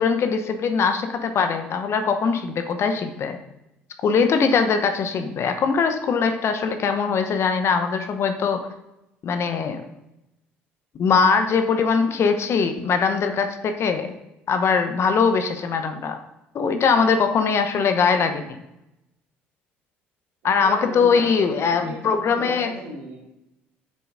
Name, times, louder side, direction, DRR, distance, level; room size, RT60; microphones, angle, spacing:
voice 1, 0.0-3.4 4.0-8.6 9.2-9.8 10.9-14.1 14.5-16.2 16.5-18.6 20.4-22.7, left 5 dB, 50° left, 7 dB, 0.8 m, -21 dB
voice 2, 20.4-23.2, right 1 dB, 70° right, -3 dB, 2.4 m, -37 dB
7.7 x 6.8 x 2.5 m, 0.90 s
hypercardioid pair, 60°, 6 cm